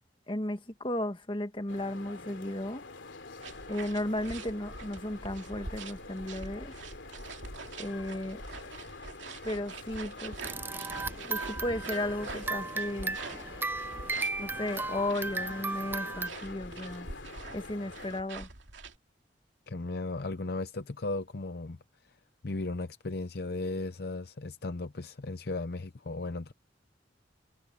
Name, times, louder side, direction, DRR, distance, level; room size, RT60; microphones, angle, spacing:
voice 1, 0.3-2.8 3.7-6.8 7.8-8.4 9.4-10.3 11.3-13.2 14.4-17.1 17.5-18.5, left 1 dB, 25° left, 1.7 m, -34 dB
sound 1, 1.7-18.2, left 3 dB, 85° left, 3.0 m, -46 dB
sound 2, 3.4-19.0, right 3 dB, 85° right, 2.5 m, -45 dB
sound 3, 10.4-16.3, right 3 dB, 10° right, 0.3 m, -36 dB
voice 2, 19.7-21.8 22.4-26.5, left 2 dB, 55° left, 0.7 m, -36 dB
head